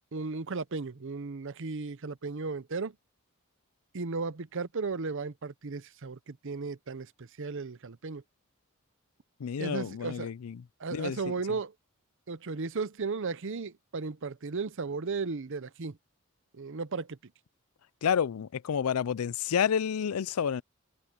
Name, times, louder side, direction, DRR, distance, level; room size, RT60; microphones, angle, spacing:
voice 1, 0.1-2.9 3.9-8.2 9.6-10.3 10.8-11.7 12.3-16.0 16.5-17.2, right 4 dB, 60° right, 0.8 m, -35 dB
voice 2, 9.4-10.6 10.9-11.3 18.0-20.6, left 7 dB, 90° left, 0.4 m, -29 dB
open air
head